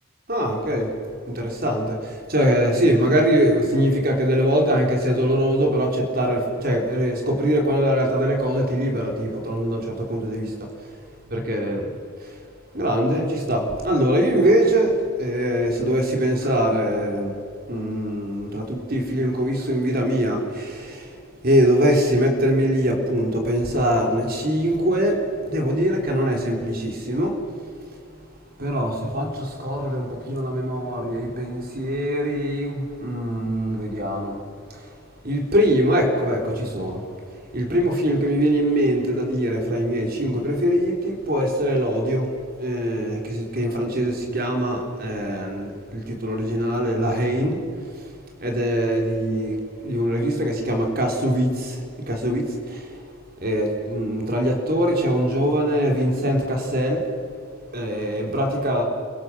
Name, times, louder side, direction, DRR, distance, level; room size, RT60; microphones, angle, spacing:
voice 1, 0.3-0.9 1.3-10.7 11.3-11.8 12.7-17.3 17.7-21.1 21.4-27.4 28.6-34.4 35.2-37.0 37.5-42.3 42.6-47.6 48.4-49.6 49.8-51.8 52.1-52.9 53.4-57.0 57.7-58.8, equal, 45° right, 1 dB, 3.8 m, -22 dB
29.5 x 24.0 x 6.2 m, 2.4 s
head